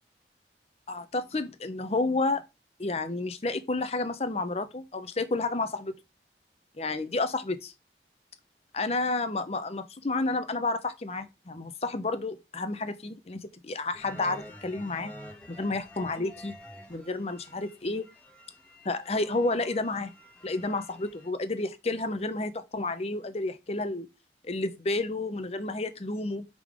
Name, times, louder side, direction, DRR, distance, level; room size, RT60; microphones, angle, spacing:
voice 1, 0.9-2.4 2.8-5.9 6.8-7.7 8.7-15.1 15.5-16.5 16.9-18.1 18.8-20.1 20.4-24.1 24.4-26.4, left 2 dB, 35° left, 0.7 m, -30 dB
sound 1, 13.9-21.3, equal, 5° left, 1.3 m, -49 dB
5.3 x 3.7 x 4.9 m
head